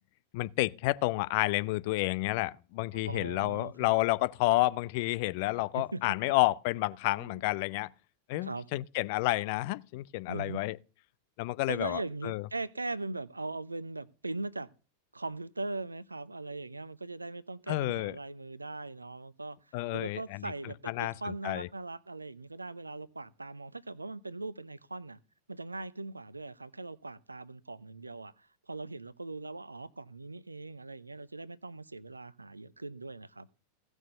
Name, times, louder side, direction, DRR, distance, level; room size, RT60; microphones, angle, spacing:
voice 1, 0.3-7.9 8.3-10.8 11.4-12.5 17.7-18.2 19.7-20.5 20.9-21.7, left 19 dB, 50° left, 0.6 m, -30 dB
voice 2, 2.9-4.0 5.7-6.2 7.1-7.4 8.4-8.7 10.3-10.6 11.7-14.7 15.1-19.6 19.9-25.2 25.5-33.5, right 3 dB, 80° right, 0.7 m, -40 dB
16.5 x 6.3 x 6.6 m
figure-of-eight pair, 90°, 0 cm